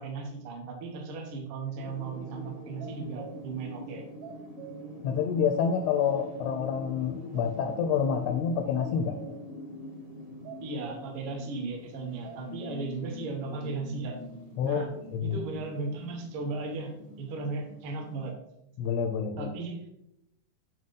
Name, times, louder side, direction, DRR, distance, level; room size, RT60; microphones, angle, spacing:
voice 1, 0.0-4.1 10.6-14.2 14.6-14.9 15.2-18.3 19.4-19.8, right 3 dB, 55° right, 2 dB, 1.6 m, -36 dB
sound 1, 1.7-18.3, left 1 dB, 30° right, 1.2 m, -44 dB
sound 2, 2.8-3.6 3.9-5.0 5.3-5.4 5.8-6.6 6.9-7.0 7.3-8.2 8.5-9.6 9.9-10.0 10.4-11.2 11.6-11.7 12.2-13.0, right 8 dB, 80° right, 1.4 m, -47 dB
voice 2, 5.0-9.2 14.6-14.8 15.1-15.4 18.8-19.5, left 7 dB, 80° left, 8 dB, 1.5 m, -28 dB
8.9 x 3.1 x 5.4 m, 0.84 s
omnidirectional pair, 3.4 m